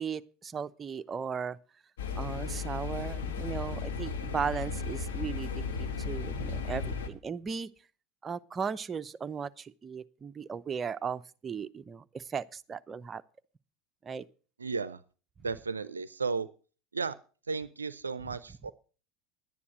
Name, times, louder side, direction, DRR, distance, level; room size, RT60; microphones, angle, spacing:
voice 1, 0.0-1.6 2.1-5.5 5.8-7.7 8.2-13.2 14.0-14.2, right 6 dB, 25° right, 0.7 m, -36 dB
sound 1, 2.0-7.1, left 5 dB, 70° left, 1.8 m, -35 dB
voice 2, 14.6-15.0 15.4-16.5 16.9-17.2 17.5-18.7, right 4 dB, 85° right, 0.5 m, -34 dB
11.0 x 9.7 x 6.1 m
figure-of-eight pair, 80°, 0 cm